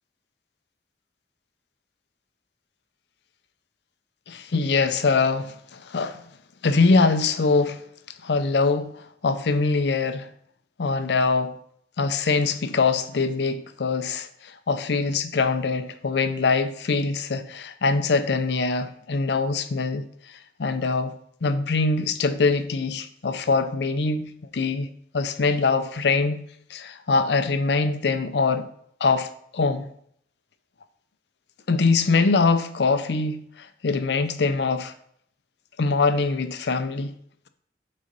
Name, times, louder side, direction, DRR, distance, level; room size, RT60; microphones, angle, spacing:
voice 1, 4.3-6.2 6.6-7.8 8.2-10.3 10.8-11.6 12.0-24.9 25.1-26.4 26.7-28.7 29.0-29.9 31.7-34.9 35.8-37.1, left 4 dB, 65° left, 10 dB, 0.5 m, -23 dB
6.5 x 4.2 x 5.2 m, 0.67 s
head